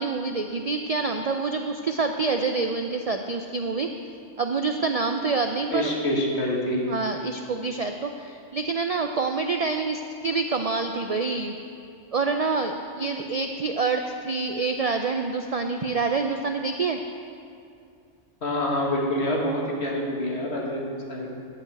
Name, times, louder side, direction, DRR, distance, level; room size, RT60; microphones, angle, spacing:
voice 1, 0.0-3.9 4.4-5.9 6.9-11.5 12.1-17.0, right 4 dB, 60° right, 5 dB, 0.4 m, -27 dB
voice 2, 5.7-6.9 18.4-21.3, left 1 dB, 65° left, -2 dB, 1.9 m, -26 dB
11.0 x 5.6 x 8.2 m, 2.4 s
omnidirectional pair, 1.2 m